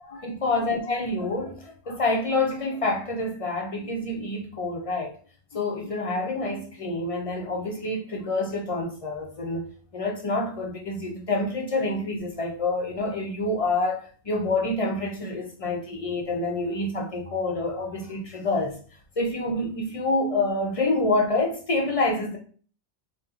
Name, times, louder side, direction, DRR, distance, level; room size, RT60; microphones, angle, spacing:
voice 1, 0.0-5.1 5.5-9.6 9.9-18.8 19.2-22.4, left 2 dB, 45° left, 0.4 m, -27 dB
2.8 x 2.1 x 3.5 m
omnidirectional pair, 1.2 m